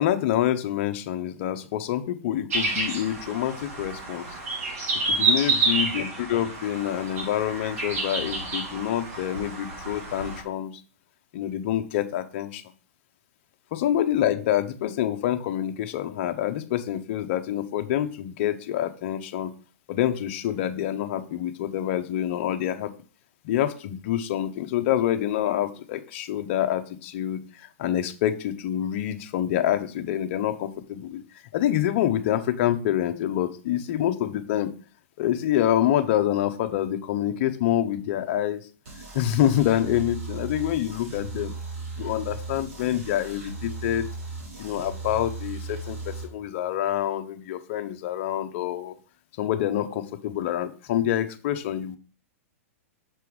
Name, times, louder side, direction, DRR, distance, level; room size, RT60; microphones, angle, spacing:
voice 1, 0.0-4.3 5.1-10.7 11.3-12.6 13.7-19.5 19.9-22.9 23.4-31.2 31.5-34.7 35.2-38.7 39.1-41.5 42.0-44.1 44.6-49.0 49.4-52.0, left 11 dB, 50° left, 8 dB, 0.6 m, -26 dB
sound 1, 2.5-10.4, right 3 dB, 75° right, 1.8 m, -29 dB
sound 2, 38.8-46.2, right 3 dB, 60° right, 3.1 m, -37 dB
6.0 x 3.4 x 4.7 m, 0.39 s
hypercardioid pair, 140°, 8 cm